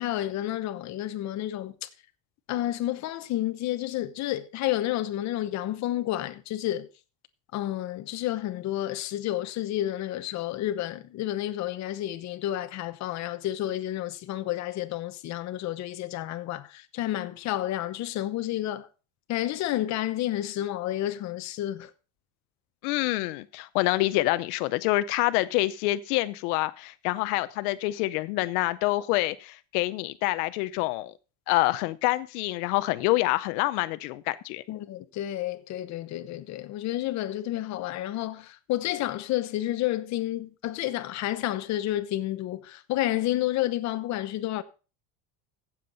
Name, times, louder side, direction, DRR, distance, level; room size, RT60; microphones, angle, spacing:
voice 1, 0.0-1.7 2.5-6.9 7.5-18.9 19.3-21.9 34.7-44.6, left 14 dB, 40° left, 1.0 m, -30 dB
voice 2, 22.8-31.1 31.5-34.6, left 18 dB, 80° left, 0.7 m, -26 dB
15.5 x 7.5 x 4.0 m
cardioid pair, 160°, 44 cm